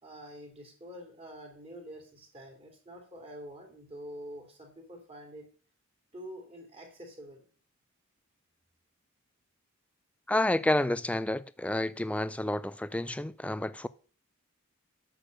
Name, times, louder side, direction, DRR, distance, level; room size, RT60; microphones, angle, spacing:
voice 1, 0.0-5.5 6.1-7.4, equal, 30° right, 2.8 m, -46 dB
voice 2, 10.3-13.9, left 1 dB, 5° left, 0.3 m, -29 dB
8.2 x 6.5 x 6.6 m
head